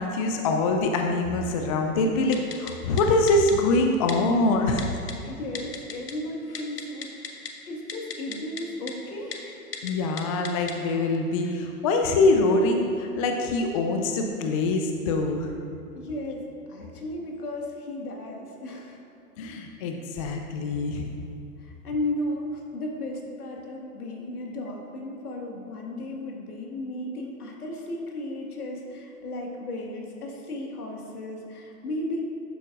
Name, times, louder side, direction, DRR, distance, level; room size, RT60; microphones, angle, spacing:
voice 1, 0.0-5.0 9.8-15.5 19.4-21.1, left 2 dB, 25° left, 3 dB, 0.4 m, -24 dB
Typing, 2.3-2.7 3.0-3.1 3.3-3.5 4.1-4.2 4.8-5.1 5.6-6.1 6.4-7.5 7.9-8.6 8.9-9.0 9.3-9.4 9.7-9.9 10.2-10.7 11.1-11.2, left 6 dB, 90° left, 1.0 m, -35 dB
voice 2, 5.1-9.6 15.9-19.0 20.7-20.8 21.6-32.2, left 1 dB, 70° left, 0 dB, 2.0 m, -35 dB
11.5 x 8.0 x 2.5 m, 2.7 s
hypercardioid pair, 110°, 46 cm